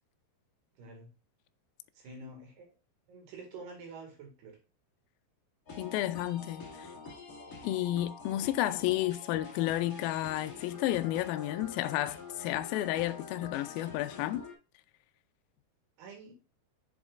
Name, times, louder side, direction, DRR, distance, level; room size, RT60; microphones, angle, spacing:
voice 1, 0.8-1.1 2.0-2.7 3.1-4.6 16.0-16.3, right 3 dB, 80° right, 3.9 m, -47 dB
sound 1, 5.7-14.5, left 4 dB, 30° left, 1.7 m, -46 dB
voice 2, 5.8-6.9 7.6-14.4, left 14 dB, 85° left, 2.1 m, -32 dB
7.3 x 7.2 x 2.5 m
omnidirectional pair, 4.6 m